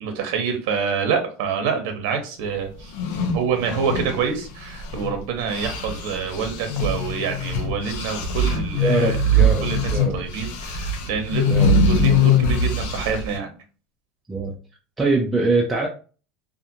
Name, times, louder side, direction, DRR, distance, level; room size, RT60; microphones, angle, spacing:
voice 1, 0.0-2.9 3.3-9.2 9.6-13.5, right 6 dB, 65° right, 5 dB, 0.7 m, -26 dB
sound 1, 2.8-5.2 5.5-13.4, left 2 dB, 75° left, 0.7 m, -22 dB
voice 2, 8.7-10.2 11.5-11.7 14.3-14.6 15.0-15.9, right 3 dB, 10° right, -1 dB, 0.4 m, -23 dB
2.4 x 2.4 x 2.8 m, 0.37 s
supercardioid pair, 135°, 0 cm